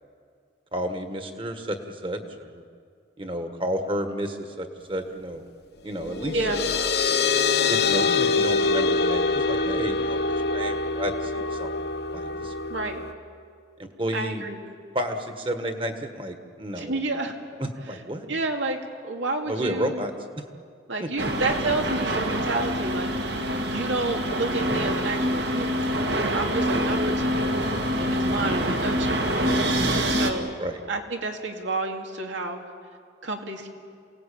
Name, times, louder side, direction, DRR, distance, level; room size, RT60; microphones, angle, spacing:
voice 1, 0.7-2.6 3.2-5.5 5.8-6.4 7.7-10.2 10.5-11.7 12.1-12.5 13.8-14.4 14.9-17.0 17.6-18.3 19.4-20.5 21.0-21.1 28.4-28.8 30.6-30.8, equal, 30° right, 6 dB, 1.7 m, -31 dB
sound 1, 6.0-13.1, left 4 dB, 60° left, 1.0 m, -25 dB
voice 2, 12.7-13.0 14.1-14.6 16.8-17.3 18.3-18.8 19.0-20.1 20.9-23.1 23.6-27.6 28.0-29.3 30.1-30.5 30.9-32.6 33.2-33.7, right 2 dB, 90° right, 3 dB, 2.5 m, -30 dB
sound 2, 21.2-30.3, equal, 65° right, 2.1 m, -25 dB
28.0 x 18.5 x 8.6 m, 2.2 s
head